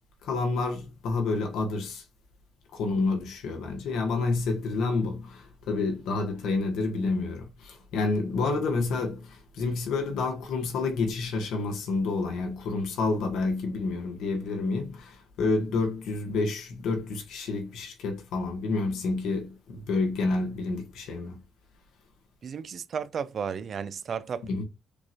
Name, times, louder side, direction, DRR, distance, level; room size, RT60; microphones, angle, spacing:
voice 1, 0.2-2.0 2.7-21.4 24.5-24.6, left 3 dB, 85° left, 1.3 m, -29 dB
voice 2, 22.4-24.6, right 6 dB, 55° right, 0.4 m, -34 dB
6.7 x 2.5 x 2.9 m
cardioid pair, 90°, 0 cm